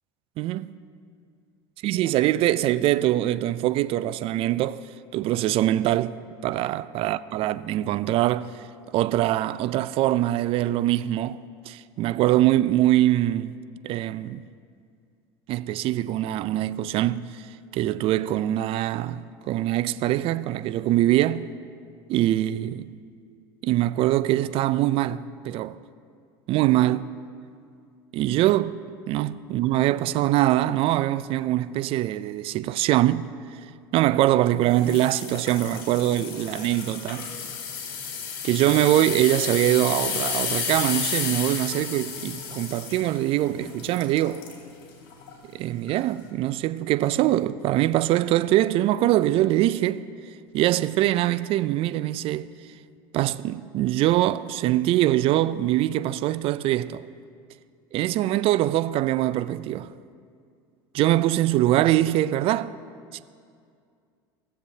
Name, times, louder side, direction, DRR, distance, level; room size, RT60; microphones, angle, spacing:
voice 1, 0.4-0.7 1.8-4.8 5.1-8.5 8.9-13.6 13.8-14.4 15.5-17.4 17.7-21.5 22.1-23.0 23.6-25.8 26.5-27.2 28.1-28.8 29.1-33.3 33.9-37.3 38.4-44.4 45.5-50.0 50.5-52.5 53.1-57.1 57.9-59.9 60.9-62.7 63.1-63.2, right 14 dB, 50° right, 0.4 m, -23 dB
sound 1, 34.7-44.6 45.1-45.3 45.9-46.0, left 6 dB, 70° left, 2.4 m, -32 dB
18.0 x 7.3 x 2.7 m
hypercardioid pair, 90°, 12 cm